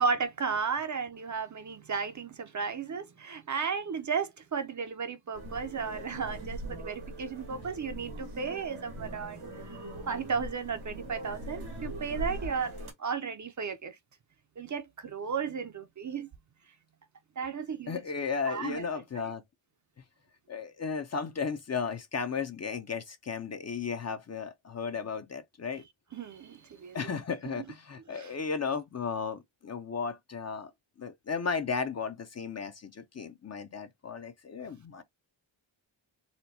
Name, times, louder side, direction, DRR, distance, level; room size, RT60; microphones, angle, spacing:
voice 1, 0.0-9.8 10.1-12.7 13.0-14.0 14.6-16.3 17.4-18.0 18.5-19.3 26.1-27.0 28.1-28.3, right 5 dB, 40° right, 0.5 m, -34 dB
sound 1, 5.3-12.9, right 1 dB, 90° right, 1.4 m, -41 dB
voice 2, 17.9-19.4 20.5-25.8 26.9-30.7 31.0-35.0, left 5 dB, 35° left, 0.5 m, -35 dB
4.3 x 2.2 x 2.6 m
wide cardioid pair, 90°, 46 cm